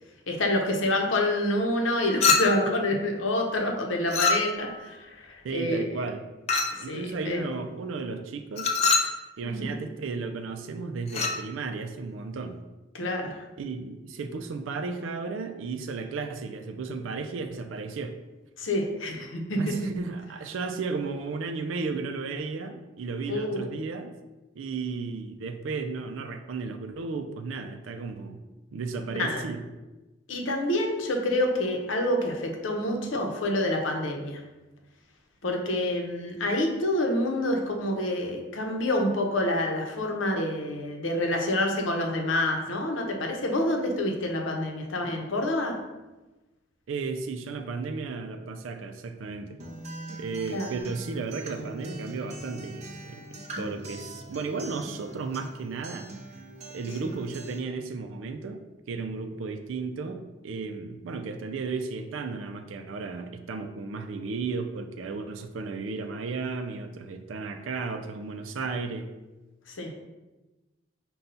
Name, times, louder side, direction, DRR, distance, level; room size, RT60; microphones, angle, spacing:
voice 1, 0.3-5.9 6.8-7.4 9.4-9.8 12.9-13.4 18.6-19.7 23.3-23.7 29.2-29.4 30.3-34.4 35.4-45.7 50.5-50.9 57.0-57.2 69.7-69.9, left 1 dB, 85° left, 1 dB, 0.8 m, -27 dB
Chink clink, 2.2-2.8 4.1-4.8 6.5-6.9 8.6-9.2 11.1-11.4, left 4 dB, 30° left, 0.3 m, -24 dB
voice 2, 5.4-6.3 6.8-8.8 9.4-12.6 13.6-18.2 19.6-24.1 24.6-28.4 28.7-29.6 46.9-49.6 50.1-53.2 53.6-56.1 56.7-58.6 58.9-69.1, right 4 dB, 85° right, 7 dB, 0.4 m, -34 dB
Acoustic guitar, 49.6-57.6, right 1 dB, 35° right, 0.5 m, -42 dB
5.4 x 2.3 x 3.9 m, 1.1 s
head